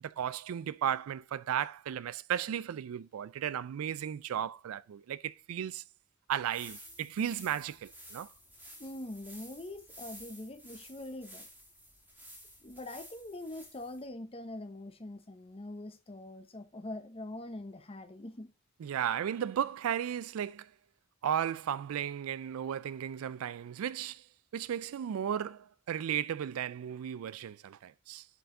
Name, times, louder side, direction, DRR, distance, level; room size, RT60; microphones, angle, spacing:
voice 1, 0.0-5.8 6.3-8.3 18.8-20.7 21.2-24.2 24.5-28.3, right 9 dB, 85° right, 0.3 m, -35 dB
sound 1, 6.3-14.1, equal, 10° right, 1.8 m, -52 dB
voice 2, 8.8-11.5 12.6-18.5, left 1 dB, 25° left, 0.9 m, -43 dB
7.7 x 4.7 x 3.8 m
head